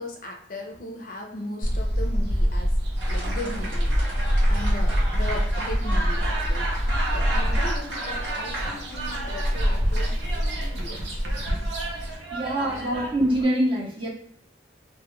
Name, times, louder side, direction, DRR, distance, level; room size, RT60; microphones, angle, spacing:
voice 1, 0.0-2.8 3.1-10.2 10.6-11.2 12.3-12.8, left 1 dB, 45° left, 2 dB, 0.4 m, -38 dB
sound 1, 1.6-12.2, equal, 70° right, 0.5 m, -25 dB
sound 2, 2.9-13.4, right 2 dB, 90° right, 1.1 m, -34 dB
voice 2, 12.3-14.1, right 1 dB, 30° right, -5 dB, 0.6 m, -24 dB
2.2 x 2.1 x 2.9 m, 0.65 s
head